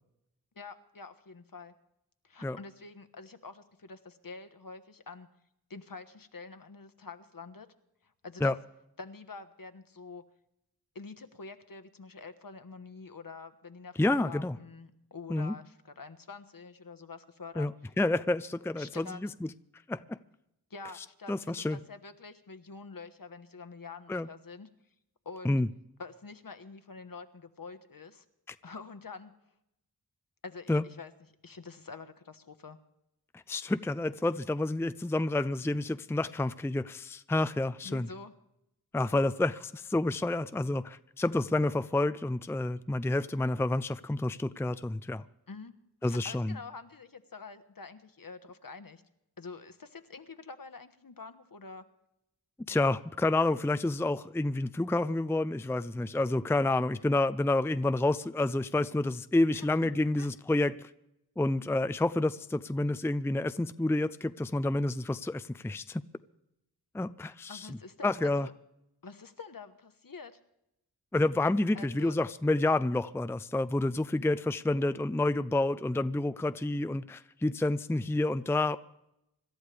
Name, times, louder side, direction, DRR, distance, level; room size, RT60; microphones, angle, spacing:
voice 1, 0.5-1.7 2.2-5.3 5.7-7.7 8.0-8.5 9.0-10.2 10.9-13.9 14.2-17.7 18.8-19.2 20.7-24.7 25.2-25.6 26.0-28.2 28.6-29.3 30.4-31.1 31.4-32.8 37.8-38.3 39.1-39.2 45.5-45.7 46.0-49.0 49.4-51.8 59.5-59.9 60.2-60.3 67.5-68.5 69.0-70.4 71.7-72.2, left 4 dB, 60° left, 10 dB, 1.3 m, -46 dB
voice 2, 14.0-14.6 15.3-15.5 17.6-17.7 18.0-19.5 19.9-20.2 21.3-21.8 24.1-24.3 25.4-25.7 30.7-30.8 33.5-38.1 38.9-45.2 46.0-46.6 52.7-60.9 61.4-66.0 66.9-67.8 68.0-68.5 71.1-78.8, left 2 dB, 5° left, 12 dB, 0.5 m, -29 dB
26.0 x 13.0 x 3.4 m, 0.82 s
wide cardioid pair, 60°, 39 cm